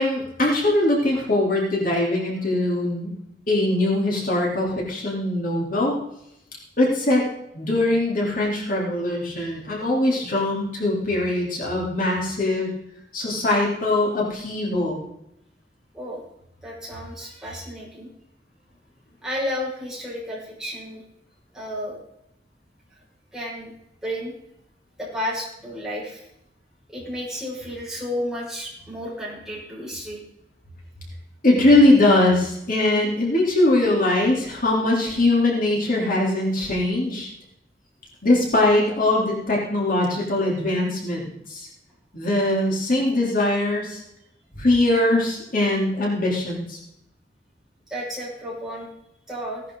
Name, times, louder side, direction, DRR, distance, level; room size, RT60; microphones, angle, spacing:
voice 1, 0.0-3.1 3.5-6.0 6.8-7.3 7.5-12.7 13.1-15.0 31.4-37.3 38.2-41.7 42.1-44.0 44.6-46.8, left 2 dB, 50° left, -3 dB, 3.6 m, -21 dB
voice 2, 16.6-18.1 19.2-21.0 21.5-22.0 22.9-23.0 23.3-23.7 24.0-24.3 25.0-26.3 26.9-30.2 47.9-48.9 49.3-49.6, equal, 5° right, -6 dB, 6.1 m, -32 dB
18.0 x 11.5 x 4.0 m, 0.81 s
head